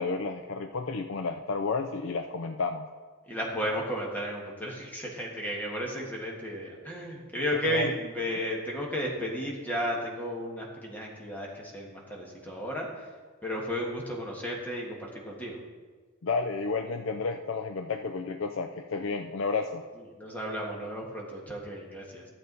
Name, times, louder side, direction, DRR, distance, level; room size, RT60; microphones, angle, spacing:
voice 1, 0.0-2.9 7.7-7.9 16.2-19.8, left 4 dB, 75° left, 6 dB, 0.5 m, -31 dB
voice 2, 3.3-13.1 13.4-15.6 19.9-22.3, equal, 10° left, -2 dB, 1.7 m, -34 dB
12.0 x 8.0 x 4.1 m, 1.4 s
head